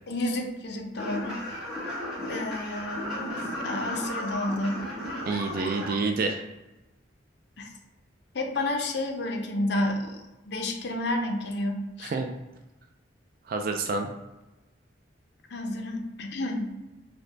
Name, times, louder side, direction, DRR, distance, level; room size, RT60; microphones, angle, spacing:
voice 1, 0.1-1.4 2.3-4.8 7.6-7.7 8.3-10.2 10.4-12.1 15.5-16.7, left 1 dB, 60° left, 2 dB, 0.6 m, -30 dB
sound 1, 1.0-5.9, left 1 dB, 5° right, 1.1 m, -34 dB
voice 2, 5.2-6.4 12.0-12.3 13.5-14.1, right 3 dB, 50° right, 4 dB, 0.3 m, -28 dB
3.8 x 2.1 x 3.2 m, 1.0 s
head